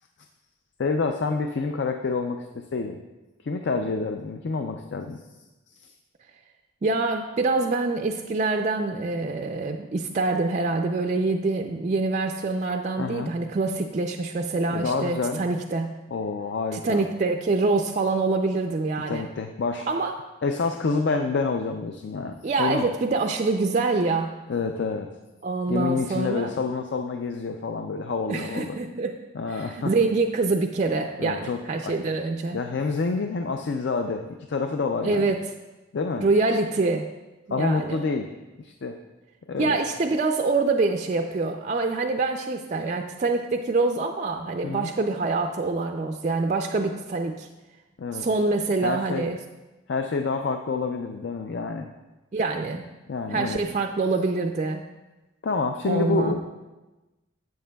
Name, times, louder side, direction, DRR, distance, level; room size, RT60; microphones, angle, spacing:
voice 1, 0.8-3.0 3.4-5.2 5.8-5.9 13.0-13.3 14.7-15.4 16.1-17.0 19.1-19.9 20.4-22.9 24.5-25.1 25.7-28.8 29.3-29.9 31.2-32.0 32.5-35.3 35.9-36.3 37.5-38.3 38.6-39.0 39.5-39.8 44.6-44.9 48.0-48.3 48.8-49.3 49.9-51.9 53.1-53.6 55.4-56.4, left 4 dB, 55° left, 5 dB, 0.4 m, -28 dB
voice 2, 6.8-16.0 16.7-19.3 19.9-20.1 22.4-24.4 25.4-26.5 28.3-29.2 29.5-32.6 35.0-35.4 36.2-37.1 37.5-38.0 39.6-47.5 48.1-49.4 52.3-52.8 53.3-54.8 55.9-56.3, right 3 dB, 35° right, 4 dB, 0.3 m, -25 dB
12.0 x 7.9 x 2.3 m, 1.1 s
head